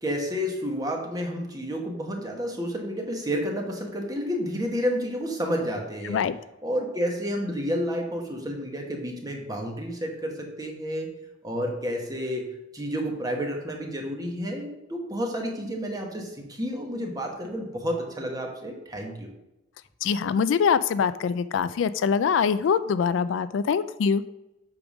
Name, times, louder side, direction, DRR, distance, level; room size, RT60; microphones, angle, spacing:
voice 1, 0.0-6.2 6.6-11.1 11.4-12.4 12.7-19.3, equal, 20° right, 1 dB, 1.3 m, -30 dB
voice 2, 20.0-24.2, left 6 dB, 85° left, 14 dB, 0.3 m, -24 dB
7.9 x 3.6 x 6.2 m, 0.92 s
head